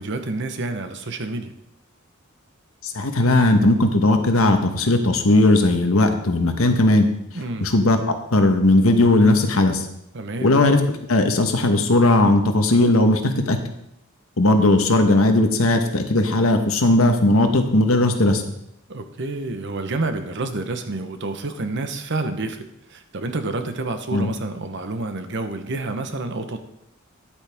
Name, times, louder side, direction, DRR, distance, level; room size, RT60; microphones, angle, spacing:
voice 1, 0.0-1.5 7.3-7.7 10.1-10.5 18.9-26.6, right 2 dB, 55° right, 8 dB, 0.9 m, -29 dB
voice 2, 2.8-7.1 7.6-8.0 8.3-9.9 10.4-10.8 11.1-13.6 14.4-18.4 24.1-24.3, left 2 dB, 75° left, 6 dB, 1.1 m, -17 dB
10.5 x 8.6 x 3.5 m, 0.79 s
head